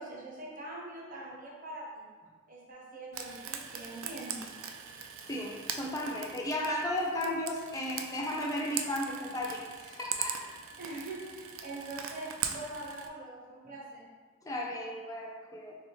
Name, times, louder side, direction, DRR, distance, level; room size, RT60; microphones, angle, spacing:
voice 1, 0.0-2.1 2.5-4.5 10.8-14.1, right 2 dB, 40° right, -4 dB, 0.8 m, -43 dB
Frying (food), 3.1-13.1, right 8 dB, 70° right, 0.3 m, -41 dB
voice 2, 5.3-10.4 14.4-15.8, left 1 dB, 15° left, -2 dB, 0.4 m, -34 dB
3.4 x 3.4 x 2.9 m, 1.5 s
head